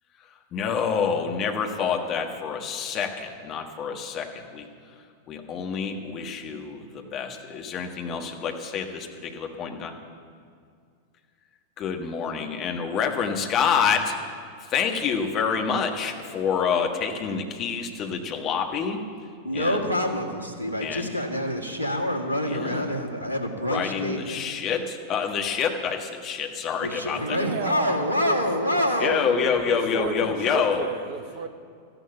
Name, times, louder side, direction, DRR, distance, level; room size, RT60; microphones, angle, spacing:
voice 1, 0.5-4.7 5.3-10.0 11.8-14.2 14.7-19.0 19.5-19.9 20.8-21.1 22.4-22.9 23.6-27.4 29.0-30.9, left 6 dB, 35° left, 4 dB, 1.5 m, -27 dB
voice 2, 19.4-24.4 26.8-29.4, left 1 dB, 80° right, 3 dB, 1.6 m, -27 dB
voice 3, 27.2-28.4 28.7-28.9 29.6-31.5, right 6 dB, 50° right, 9 dB, 1.2 m, -34 dB
13.5 x 11.0 x 7.2 m, 2.2 s
figure-of-eight pair, 90°, 0 cm